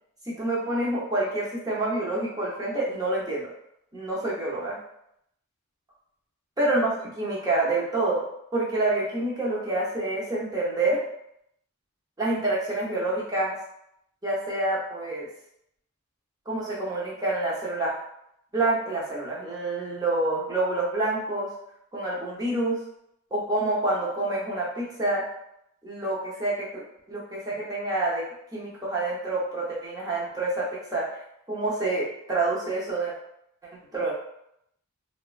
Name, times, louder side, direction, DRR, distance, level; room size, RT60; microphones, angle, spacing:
voice 1, 0.4-3.5 3.9-4.8 6.6-8.2 8.5-11.0 12.2-13.6 14.2-15.3 16.5-17.9 18.5-21.5 21.9-22.8 23.3-25.2 25.8-26.8 27.1-28.2 28.5-30.6 30.9-31.0 31.5-33.1 33.9-34.1, right 2 dB, 15° right, -6 dB, 0.7 m, -27 dB
3.4 x 2.1 x 2.4 m, 0.75 s
head